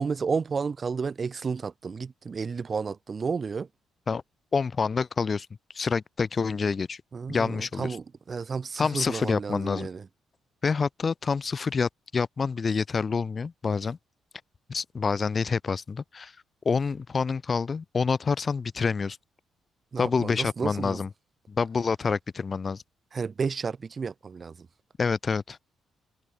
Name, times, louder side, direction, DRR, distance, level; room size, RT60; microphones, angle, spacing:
voice 1, 0.0-3.7 7.1-10.0 19.9-21.0 23.1-24.5, right 5 dB, 40° right, 0.4 m, -31 dB
voice 2, 4.5-5.5 5.7-7.0 7.3-8.0 8.8-9.9 10.6-14.0 14.7-16.3 16.6-19.2 20.0-21.1 21.5-22.8 25.0-25.6, left 5 dB, 35° left, 0.5 m, -27 dB
cardioid pair, 90°, 0 cm